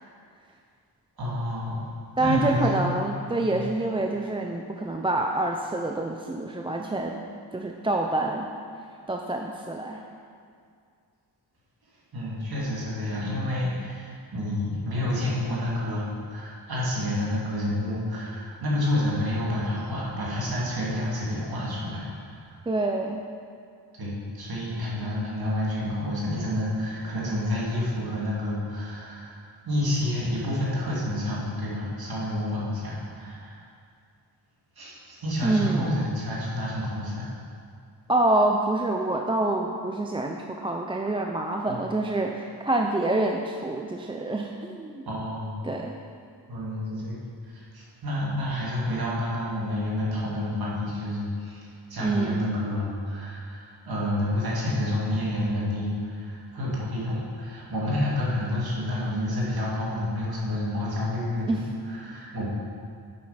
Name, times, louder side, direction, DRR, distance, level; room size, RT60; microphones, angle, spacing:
voice 1, 1.2-1.8 2.2-2.9 3.5-3.6 12.1-22.4 24.0-33.6 34.8-37.3 41.7-41.8 45.1-45.6 46.5-47.2 47.5-51.6 51.9-62.5, left 1 dB, 60° right, -6 dB, 2.4 m, -29 dB
voice 2, 2.2-7.2 7.5-8.5 9.1-10.0 22.7-23.2 35.4-35.9 38.1-45.0 45.6-46.0 52.0-52.5 61.5-61.7, right 2 dB, 15° right, 2 dB, 0.3 m, -26 dB
7.7 x 7.1 x 5.7 m, 2.3 s
wide cardioid pair, 155°, 42 cm